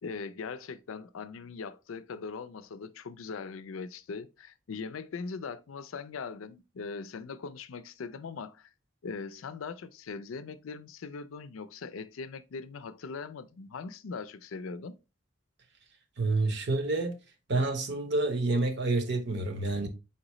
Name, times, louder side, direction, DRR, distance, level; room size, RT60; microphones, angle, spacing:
voice 1, 0.0-8.7 9.0-15.0, left 5 dB, 90° left, 0.4 m, -40 dB
voice 2, 16.2-17.2 17.5-19.9, right 2 dB, 60° right, 0.8 m, -28 dB
4.3 x 3.9 x 3.0 m
head